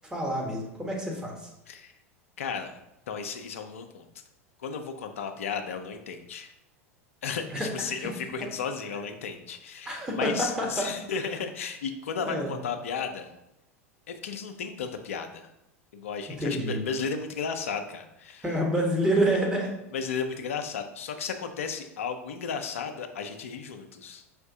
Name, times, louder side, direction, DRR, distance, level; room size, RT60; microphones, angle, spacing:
voice 1, 0.1-1.5 7.6-7.7 9.9-10.9 12.2-12.5 16.4-16.8 18.4-19.7, right 1 dB, 10° right, -2 dB, 1.1 m, -27 dB
voice 2, 1.7-2.0 2.4-2.8 3.1-4.2 4.6-6.5 7.2-13.3 14.1-15.5 15.9-18.5 19.9-24.2, left 6 dB, 65° left, 7 dB, 0.5 m, -34 dB
5.0 x 2.6 x 3.5 m, 0.86 s
figure-of-eight pair, 85°, 8 cm